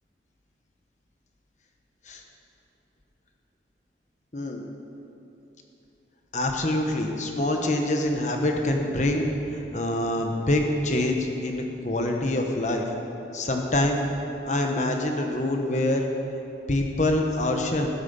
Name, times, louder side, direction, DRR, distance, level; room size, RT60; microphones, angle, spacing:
voice 1, 4.3-4.6 6.3-12.8 13.3-14.0 14.4-16.1 16.7-17.9, left 1 dB, 40° left, 3 dB, 1.1 m, -25 dB
15.5 x 11.0 x 7.0 m, 2.9 s
head